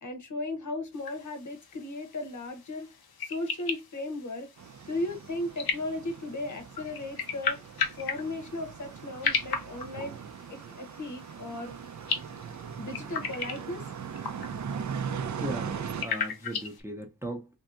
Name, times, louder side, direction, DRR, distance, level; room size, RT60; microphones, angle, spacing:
voice 1, 0.0-2.9 3.2-4.5 4.9-7.6 8.0-10.2 10.5-11.7 12.8-13.9, left 2 dB, 55° left, 0.9 m, -36 dB
sound 1, 0.9-16.8, left 5 dB, 90° left, 0.7 m, -37 dB
sound 2, 4.6-16.0, right 7 dB, 55° right, 0.4 m, -39 dB
voice 2, 15.4-17.5, right 1 dB, 5° right, 0.6 m, -37 dB
3.4 x 2.7 x 2.4 m
wide cardioid pair, 115°, 36 cm